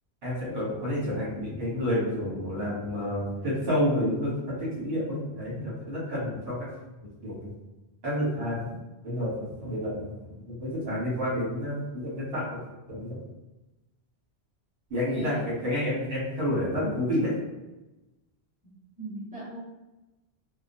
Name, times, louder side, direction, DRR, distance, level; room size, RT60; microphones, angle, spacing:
voice 1, 0.2-6.5 7.2-7.5 8.0-8.7 9.0-10.1 10.5-12.6 12.9-13.2 14.9-17.3, equal, 70° right, -7 dB, 1.5 m, -29 dB
voice 2, 15.1-15.5 19.0-19.6, right 2 dB, 5° right, -12 dB, 1.4 m, -38 dB
2.9 x 2.3 x 2.6 m, 1.0 s
omnidirectional pair, 1.1 m